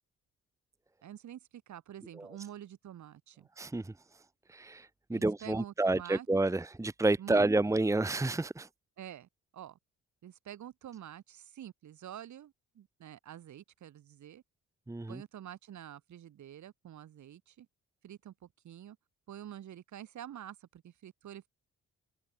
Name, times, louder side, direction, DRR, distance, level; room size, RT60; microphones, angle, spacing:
voice 1, 1.0-3.5 5.1-6.3 7.2-7.5 9.0-9.8 10.2-14.4 15.1-17.7 18.0-19.0 19.3-21.5, right 11 dB, 70° right, 7.7 m, -48 dB
voice 2, 3.6-3.9 4.5-8.7 14.9-15.2, right 2 dB, 10° right, 1.1 m, -29 dB
open air
cardioid pair, 90°, 30 cm